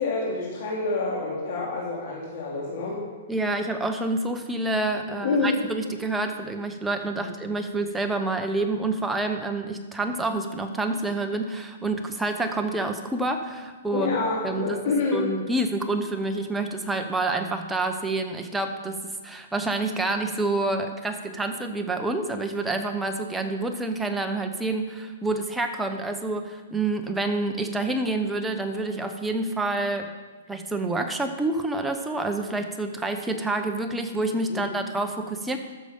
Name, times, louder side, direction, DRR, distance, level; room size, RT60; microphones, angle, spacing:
voice 1, 0.0-3.0 5.1-5.6 7.2-7.3 13.9-15.3 34.5-34.6, left 3 dB, 50° left, -4 dB, 2.5 m, -27 dB
voice 2, 3.3-14.1 14.4-14.8 15.1-30.1 30.5-35.6, right 2 dB, 5° right, 4 dB, 0.7 m, -28 dB
13.0 x 6.7 x 5.1 m, 1.3 s
hypercardioid pair, 160°, 0 cm